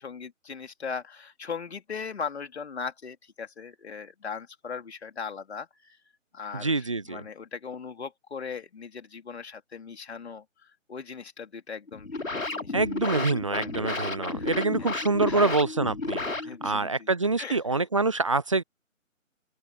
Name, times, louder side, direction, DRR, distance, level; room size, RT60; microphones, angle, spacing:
voice 1, 0.0-6.0 6.3-10.4 10.9-12.8 13.0-13.2 13.5-14.0 14.3-14.5 15.3-15.5 16.4-17.1 17.4-17.6, left 5 dB, 50° left, 3.5 m, -39 dB
voice 2, 6.5-7.2 12.7-16.2 16.6-18.6, right 3 dB, 25° right, 0.6 m, -26 dB
sound 1, 11.9-16.9, left 3 dB, 80° left, 3.3 m, -32 dB
open air
figure-of-eight pair, 145°, 40 cm